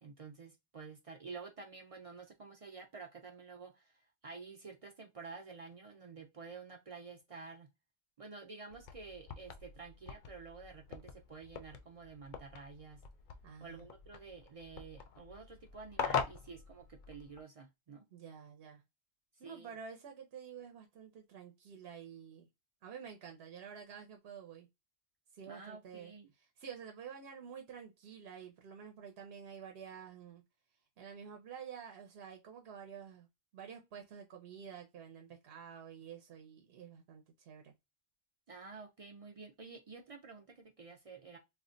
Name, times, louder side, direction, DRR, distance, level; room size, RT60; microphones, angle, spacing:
voice 1, 0.0-7.7 8.2-13.0 13.6-18.0 19.4-19.8 25.5-26.3 38.5-41.4, right 4 dB, 50° right, 0.4 m, -50 dB
sound 1, 8.7-17.4, left 6 dB, 60° left, 0.6 m, -43 dB
voice 2, 13.4-13.9 18.1-18.8 19.4-22.5 22.8-24.7 25.3-26.1 26.6-30.4 31.0-33.3 33.5-37.7, right 7 dB, 75° right, 0.9 m, -50 dB
2.4 x 2.2 x 3.7 m
omnidirectional pair, 1.1 m